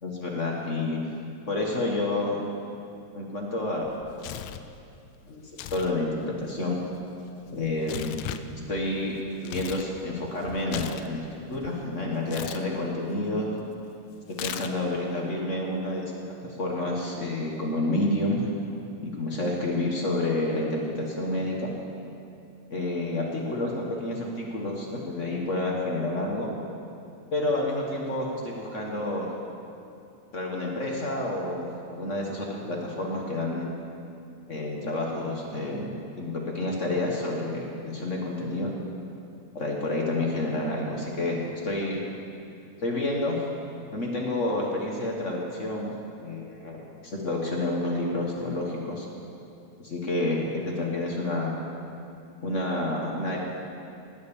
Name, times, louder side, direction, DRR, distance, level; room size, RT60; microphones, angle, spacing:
voice 1, 0.0-1.0 1.5-2.4 3.1-3.8 4.1-4.3 5.3-5.4 5.7-6.1 6.4-6.8 7.5-8.1 8.5-9.1 9.4-11.2 11.5-13.5 14.4-16.0 16.6-18.5 19.2-21.7 22.7-26.5 27.3-29.3 30.3-33.7 34.5-38.7 39.5-42.0 42.8-43.4 43.9-49.1 49.8-51.6 52.4-53.4, left 2 dB, 50° left, -2 dB, 0.8 m, -29 dB
Tearing, 3.8-4.7 5.5-5.9 6.2-9.9 10.2-11.7 12.3-12.6 14.3-15.0, left 12 dB, 80° left, 1.9 m, -38 dB
19.0 x 7.9 x 7.1 m, 2.7 s
omnidirectional pair, 3.7 m